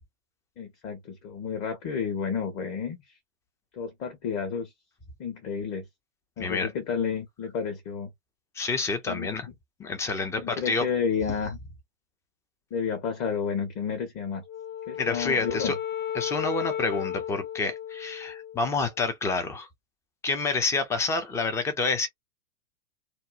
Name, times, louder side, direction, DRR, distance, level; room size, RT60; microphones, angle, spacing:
voice 1, 0.6-3.0 3.7-4.7 5.2-5.8 6.4-8.1 9.1-9.3 10.4-11.6 12.7-14.4 14.9-15.7, left 6 dB, 35° left, 1.1 m, -31 dB
voice 2, 6.4-6.7 8.6-9.5 9.8-10.9 15.0-15.7 16.1-19.7 20.2-22.1, left 3 dB, 10° left, 0.3 m, -28 dB
Wind instrument woodwind instrument, 14.4-18.9, left 10 dB, 60° left, 1.2 m, -34 dB
2.6 x 2.1 x 2.3 m
hypercardioid pair, 105°, 42 cm